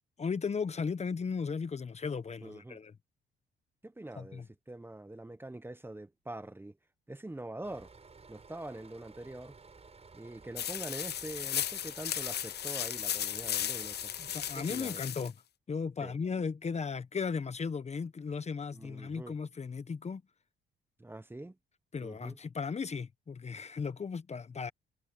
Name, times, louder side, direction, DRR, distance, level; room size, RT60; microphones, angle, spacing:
voice 1, 0.2-2.9 4.2-4.4 14.2-15.3 15.7-20.2 21.9-24.7, left 5 dB, 35° left, 1.1 m, -36 dB
voice 2, 2.4-2.8 3.8-6.8 7.1-7.9 8.3-9.6 10.1-14.1 14.5-15.0 16.0-16.1 18.7-19.3 21.0-21.6 22.0-22.4, right 1 dB, 10° right, 1.1 m, -44 dB
sound 1, 7.6-14.9, right 4 dB, 30° right, 6.1 m, -55 dB
sound 2, 10.6-15.3, left 10 dB, 55° left, 0.8 m, -35 dB
cardioid pair, 90°, 20 cm